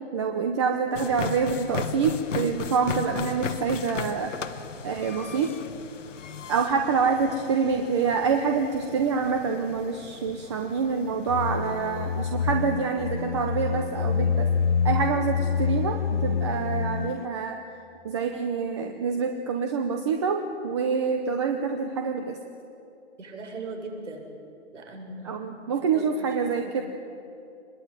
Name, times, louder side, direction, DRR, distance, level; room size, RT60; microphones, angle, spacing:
voice 1, 0.1-4.3 4.8-5.6 6.5-14.5 14.8-17.6 18.0-22.4 25.2-26.8, right 5 dB, 25° right, 5 dB, 0.9 m, -26 dB
sound 1, 0.9-12.9, left 6 dB, 90° left, 1.5 m, -37 dB
sound 2, 11.3-17.3, left 6 dB, 40° left, 0.6 m, -27 dB
voice 2, 23.2-24.2 24.7-25.6 25.9-26.3 26.6-26.7, right 2 dB, 75° right, 2 dB, 7.4 m, -39 dB
26.0 x 21.5 x 9.1 m, 2.7 s
hypercardioid pair, 170°, 36 cm